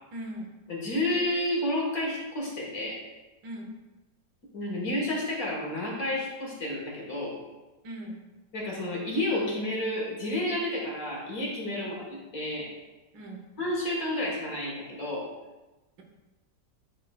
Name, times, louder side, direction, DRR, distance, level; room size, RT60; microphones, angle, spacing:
voice 1, 0.1-0.5 3.4-3.7 7.8-8.2 11.7-12.0 13.1-13.5, equal, 75° right, 1 dB, 1.6 m, -39 dB
voice 2, 0.7-3.0 4.5-7.4 8.5-12.7 13.6-15.3, left 1 dB, 55° left, -3 dB, 1.9 m, -30 dB
10.0 x 4.2 x 2.3 m, 1.1 s
omnidirectional pair, 2.0 m